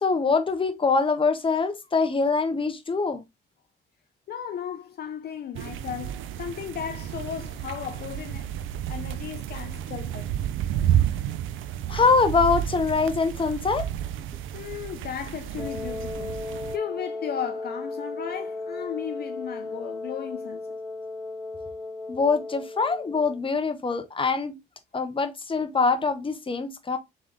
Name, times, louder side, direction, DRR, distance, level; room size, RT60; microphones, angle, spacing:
voice 1, 0.0-3.2 11.9-13.8 22.1-24.6 24.9-27.0, left 4 dB, 25° left, 0.9 m, -24 dB
voice 2, 4.3-8.5 8.9-10.3 14.5-16.4 16.7-20.8, left 9 dB, 55° left, 0.5 m, -35 dB
sound 1, 5.5-16.8, right 11 dB, 80° right, 0.5 m, -31 dB
Wind instrument woodwind instrument, 15.6-23.4, left 3 dB, ahead, 0.4 m, -35 dB
3.9 x 3.5 x 3.4 m
cardioid pair, 90°, 20 cm